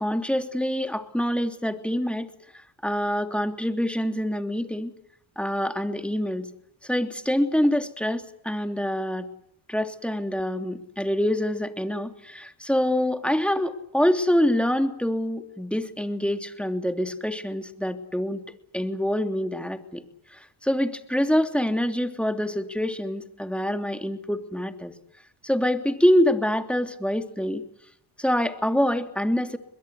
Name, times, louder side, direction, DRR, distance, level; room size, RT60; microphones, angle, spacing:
voice 1, 0.0-4.9 5.4-6.5 6.8-9.3 9.7-18.4 18.7-20.0 20.3-24.9 25.4-27.6 28.2-29.6, equal, ahead, 7 dB, 3.0 m, -25 dB
23.5 x 21.5 x 8.3 m, 0.75 s
supercardioid pair, 60°, 48 cm